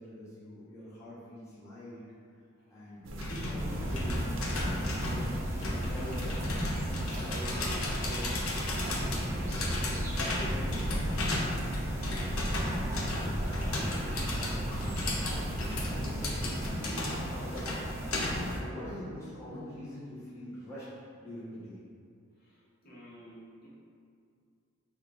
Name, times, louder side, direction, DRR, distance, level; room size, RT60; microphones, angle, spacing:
voice 1, 0.0-2.0 2.7-6.6 7.2-8.9 9.8-11.6 12.4-17.7 18.3-20.9 21.2-21.8, left 1 dB, 15° left, -11 dB, 0.7 m, -45 dB
sound 1, 3.0-16.7, equal, 65° right, 0.5 m, -36 dB
sound 2, 3.2-18.6, left 1 dB, 85° left, 0.7 m, -36 dB
sound 3, 3.6-18.6, equal, 15° right, 0.4 m, -38 dB
voice 2, 22.3-23.7, equal, 45° left, -6 dB, 0.9 m, -53 dB
5.5 x 2.3 x 3.4 m, 2.3 s
head